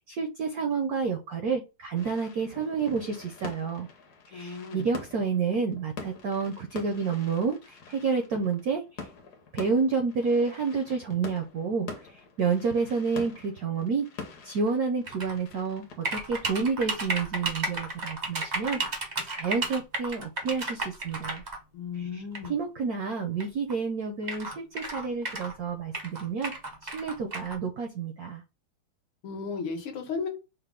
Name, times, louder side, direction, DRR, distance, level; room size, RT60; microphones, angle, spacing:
voice 1, 0.1-3.9 4.3-9.1 9.5-14.1 14.4-18.8 19.2-21.4 21.9-26.5 26.8-28.4, right 5 dB, 80° right, 5 dB, 0.8 m, -29 dB
sound 1, 2.0-17.3, left 4 dB, 60° left, 1.1 m, -45 dB
voice 2, 4.3-4.9 21.7-22.5 29.2-30.3, left 5 dB, 80° left, 4 dB, 1.9 m, -35 dB
sound 2, 15.1-15.3 16.0-21.6 22.3-22.5 23.4-23.5 23.7-23.8 24.2-25.6 25.9-27.5, right 2 dB, 50° right, 0.5 m, -33 dB
5.5 x 2.0 x 3.6 m, 0.28 s
omnidirectional pair, 2.3 m